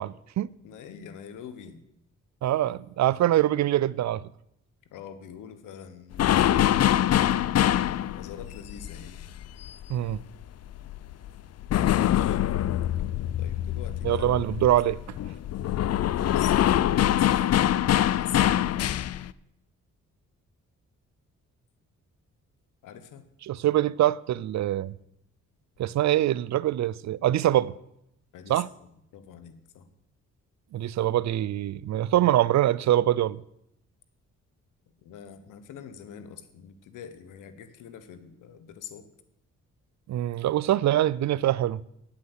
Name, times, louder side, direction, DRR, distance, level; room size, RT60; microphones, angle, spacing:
voice 1, 0.0-0.5 2.4-4.2 9.9-10.2 14.0-15.2 23.5-24.9 25.8-27.7 28.5-28.7 30.7-33.4 40.1-41.8, right 13 dB, 65° right, 0.5 m, -24 dB
voice 2, 0.6-1.7 4.9-7.1 8.1-9.2 12.0-12.4 13.4-14.4 14.9-15.1 15.9-17.7 18.2-18.8 22.8-23.3 28.3-29.9 35.0-39.1, left 8 dB, 90° left, 1.2 m, -43 dB
sound 1, 6.1-10.4 10.7-19.3, left 12 dB, 55° left, 0.5 m, -24 dB
9.3 x 8.6 x 8.1 m
cardioid pair, 65°, 30 cm